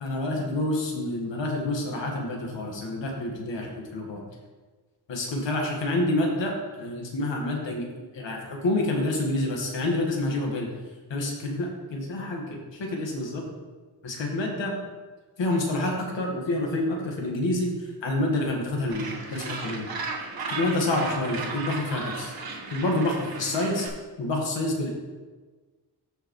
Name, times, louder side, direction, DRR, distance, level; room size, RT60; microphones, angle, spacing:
voice 1, 0.0-4.2 5.1-6.5 6.8-7.9 8.1-10.7 11.1-12.5 12.8-13.4 14.0-14.7 15.4-19.8 20.5-22.3 22.7-23.9 24.2-24.9, left 2 dB, 85° left, 0 dB, 1.7 m, -28 dB
Gull seagull, 18.9-23.9, right 4 dB, 55° right, 1.4 m, -35 dB
13.5 x 4.8 x 3.2 m, 1.3 s
wide cardioid pair, 135°, 43 cm